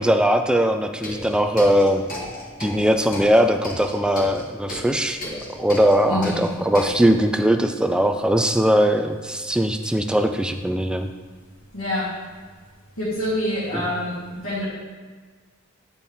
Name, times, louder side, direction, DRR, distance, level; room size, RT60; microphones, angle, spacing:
voice 1, 0.0-2.0 2.6-5.2 5.6-11.1 13.7-13.9, equal, 5° right, 6 dB, 0.3 m, -20 dB
sound 1, 0.9-7.0, left 1 dB, 45° left, 1.3 m, -36 dB
voice 2, 6.1-6.4 11.7-12.1 13.0-14.7, left 1 dB, 70° left, -12 dB, 2.0 m, -26 dB
8.8 x 4.3 x 3.5 m, 1.4 s
head